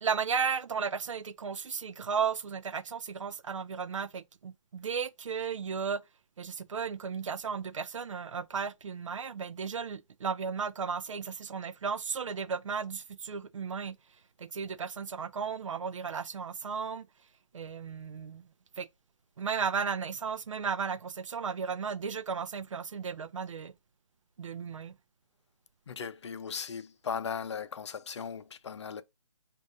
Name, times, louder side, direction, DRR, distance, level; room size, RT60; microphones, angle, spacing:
voice 1, 0.0-6.0 6.4-14.0 14.4-17.1 17.5-18.5 18.8-18.9 19.4-23.7 24.4-25.0, right 6 dB, 70° right, 0.5 m, -34 dB
voice 2, 25.9-29.0, left 6 dB, 60° left, 0.5 m, -37 dB
5.1 x 2.5 x 2.5 m
figure-of-eight pair, 145°, 17 cm